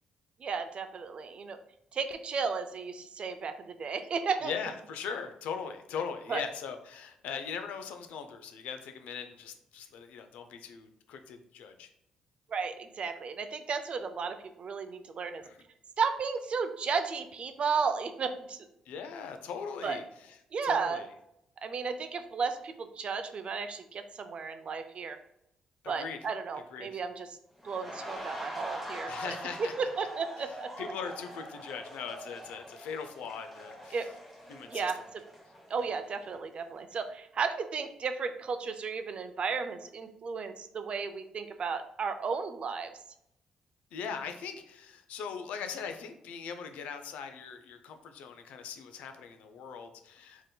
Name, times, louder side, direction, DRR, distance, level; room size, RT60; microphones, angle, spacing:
voice 1, 0.4-1.6 1.9-4.5 6.3-6.4 12.5-15.4 16.0-18.7 19.8-20.0 20.5-21.0 21.6-25.2 25.9-27.3 27.6-30.7 33.9-34.1 34.7-35.2 35.7-42.9, right 5 dB, 50° right, 8 dB, 0.4 m, -34 dB
voice 2, 4.4-11.9 15.4-15.6 18.9-20.0 20.6-21.0 26.0-26.2 26.7-27.0 29.1-29.7 30.8-34.1 34.5-34.9 43.9-50.4, left 6 dB, 80° left, 7 dB, 0.4 m, -40 dB
sound 1, 27.6-36.4 36.8-37.0, equal, ahead, 0.9 m, -44 dB
3.4 x 2.8 x 2.2 m, 0.79 s
supercardioid pair, 65°, 2 cm